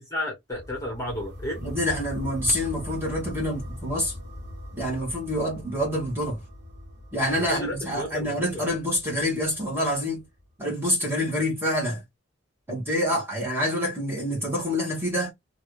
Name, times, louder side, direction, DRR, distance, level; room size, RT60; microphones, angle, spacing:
voice 1, 0.0-1.6 7.3-8.6, left 1 dB, 15° left, 1.0 m, -33 dB
sound 1, 0.5-10.4, left 1 dB, 55° right, 1.3 m, -41 dB
voice 2, 1.6-4.1 4.7-6.4 7.1-10.2 10.6-12.0 12.7-15.3, equal, 10° right, 1.4 m, -27 dB
3.0 x 2.5 x 3.1 m
head